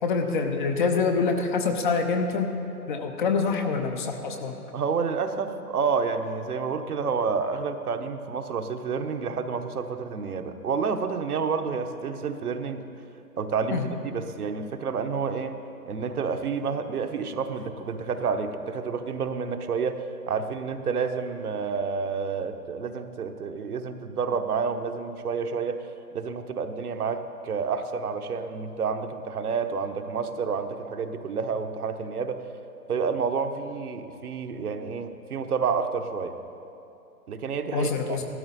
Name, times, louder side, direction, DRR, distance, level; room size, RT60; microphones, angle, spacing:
voice 1, 0.0-2.5 2.9-4.6 13.7-13.9 37.7-38.3, left 4 dB, 30° left, 5 dB, 0.9 m, -25 dB
voice 2, 4.7-12.9 13.4-15.6 15.9-25.8 26.1-32.4 32.9-36.3 37.3-38.2, right 5 dB, 65° right, 6 dB, 1.1 m, -29 dB
15.5 x 13.0 x 4.1 m, 2.7 s
hypercardioid pair, 140°, 48 cm